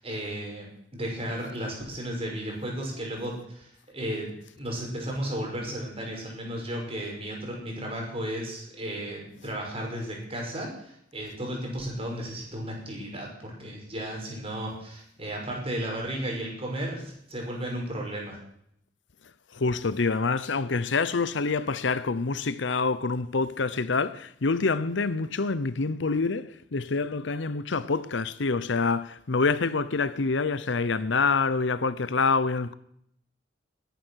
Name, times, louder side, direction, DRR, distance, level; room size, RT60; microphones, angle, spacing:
voice 1, 0.0-18.4, right 1 dB, 30° right, 5.9 m, -34 dB
voice 2, 19.5-32.7, left 4 dB, 70° left, 0.8 m, -26 dB
20.5 x 10.5 x 6.4 m
head